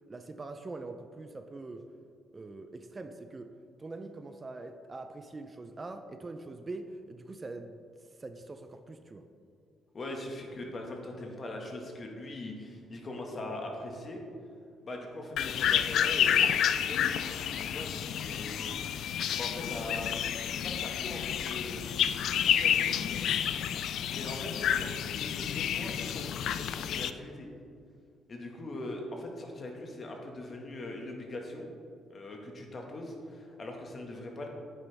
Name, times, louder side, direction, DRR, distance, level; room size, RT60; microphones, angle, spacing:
voice 1, 0.1-1.8 2.3-3.5 3.8-7.8 8.2-9.2, right 3 dB, 30° right, 7 dB, 0.6 m, -43 dB
voice 2, 9.9-14.2 14.8-18.6 19.3-20.1 20.4-21.9 22.2-23.1 24.1-27.5 28.3-31.7 32.1-34.5, left 1 dB, 40° left, 1 dB, 1.7 m, -41 dB
sound 1, 15.4-27.1, left 9 dB, 75° left, 0.3 m, -30 dB
9.1 x 8.9 x 3.5 m, 2.3 s
cardioid pair, 80°, 0 cm